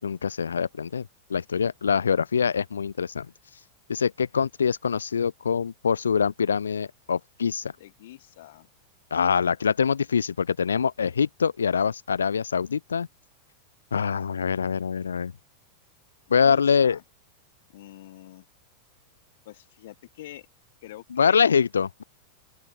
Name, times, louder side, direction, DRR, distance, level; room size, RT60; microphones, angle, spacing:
voice 1, 0.0-3.3 3.9-7.7 9.1-13.1 13.9-15.3 16.3-17.0 21.1-22.0, left 6 dB, 70° left, 0.3 m, -24 dB
voice 2, 7.8-8.7 16.4-17.0 17.7-18.4 19.5-20.5 20.8-21.4, left 15 dB, 55° left, 1.7 m, -45 dB
open air
figure-of-eight pair, 90°, 0 cm